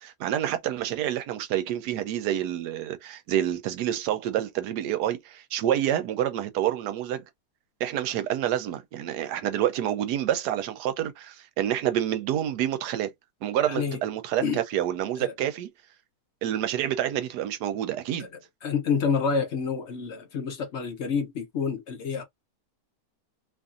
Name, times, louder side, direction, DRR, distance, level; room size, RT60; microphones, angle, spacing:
voice 1, 0.0-7.2 7.8-13.1 13.4-15.7 16.4-18.3, right 11 dB, 80° right, 1.2 m, -28 dB
voice 2, 13.6-14.0 14.4-14.6 15.2-15.3 18.2-18.3 18.6-22.2, left 5 dB, 60° left, 0.8 m, -28 dB
2.9 x 2.6 x 2.4 m
omnidirectional pair, 1.7 m